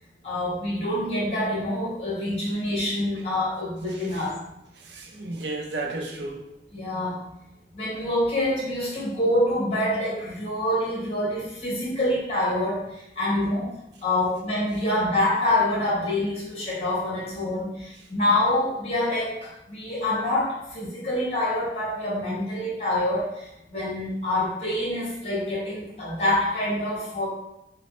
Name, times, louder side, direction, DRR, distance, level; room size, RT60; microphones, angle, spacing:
voice 1, 0.2-4.4 6.7-7.2 7.7-27.3, left 1 dB, 35° left, -6 dB, 1.0 m, -26 dB
voice 2, 3.9-4.2 4.8-6.4, right 2 dB, 75° right, 1 dB, 0.5 m, -33 dB
3.0 x 2.0 x 3.0 m, 0.86 s
head